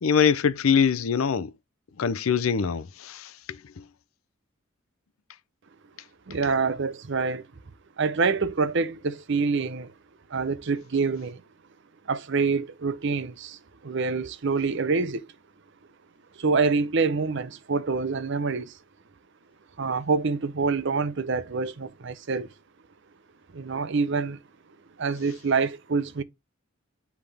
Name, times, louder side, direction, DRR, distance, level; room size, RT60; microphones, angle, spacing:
voice 1, 0.0-1.5 2.0-3.8, left 6 dB, 85° left, 0.5 m, -24 dB
voice 2, 6.3-7.4 8.0-9.9 10.3-11.4 12.1-15.3 16.4-18.7 19.8-22.5 23.5-24.4 25.0-26.2, right 4 dB, 60° right, 0.6 m, -26 dB
9.7 x 3.5 x 3.4 m
head